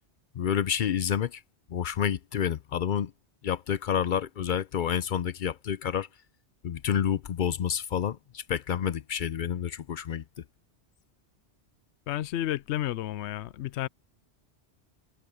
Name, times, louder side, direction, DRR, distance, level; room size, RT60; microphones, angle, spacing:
voice 1, 0.3-1.4 1.7-3.1 3.4-6.1 6.6-10.2, left 9 dB, 55° left, 0.6 m, -29 dB
voice 2, 12.1-13.9, left 13 dB, 75° left, 0.9 m, -31 dB
omnidirectional pair, 1.2 m